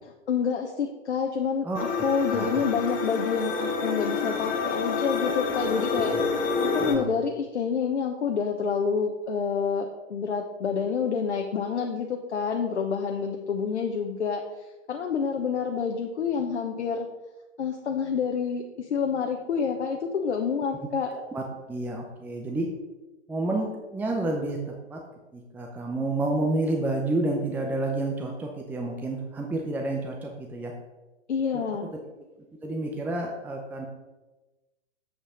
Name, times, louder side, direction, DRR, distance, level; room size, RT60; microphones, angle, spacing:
voice 1, 0.3-1.7 2.0-14.4 14.9-17.1 17.6-21.1 31.3-31.9, left 6 dB, 70° left, 3 dB, 1.0 m, -28 dB
sound 1, 1.7-7.0, left 4 dB, 25° left, 1.4 m, -28 dB
voice 2, 2.3-2.7 5.6-5.7 6.1-6.2 6.8-7.1 21.2-22.7 23.3-25.0 25.3-30.7 31.5-31.6 32.6-33.9, right 2 dB, 5° right, 1 dB, 0.7 m, -30 dB
7.8 x 6.4 x 5.1 m, 1.1 s
figure-of-eight pair, 115°, 35 cm